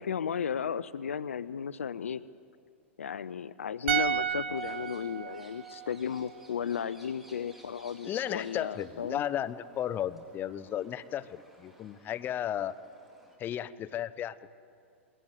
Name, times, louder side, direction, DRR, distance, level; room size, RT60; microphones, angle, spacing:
voice 1, 0.0-2.2 3.0-9.2, left 7 dB, 80° left, 18 dB, 0.5 m, -34 dB
sound 1, 3.9-7.1 7.3-7.5, right 9 dB, 60° right, 0.8 m, -34 dB
sound 2, 4.5-13.4, equal, ahead, 3.8 m, -58 dB
voice 2, 8.0-12.7 13.4-14.5, left 10 dB, 30° left, 14 dB, 0.7 m, -34 dB
21.0 x 17.5 x 8.0 m, 2.4 s
hypercardioid pair, 105°, 7 cm